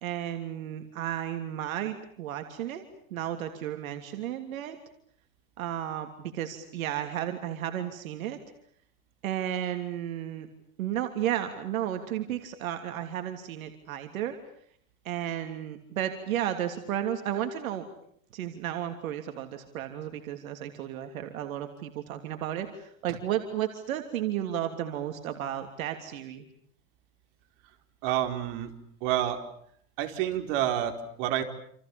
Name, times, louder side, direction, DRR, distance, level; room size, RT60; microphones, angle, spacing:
voice 1, 0.0-2.8 3.1-4.8 5.6-8.4 9.2-10.5 10.8-14.4 15.0-17.8 18.3-26.4, right 11 dB, 85° right, 6 dB, 3.1 m, -33 dB
voice 2, 28.0-28.7 29.0-29.4 30.0-31.4, right 11 dB, 60° right, 6 dB, 4.6 m, -29 dB
29.0 x 28.0 x 7.0 m, 0.65 s
supercardioid pair, 130°, 41 cm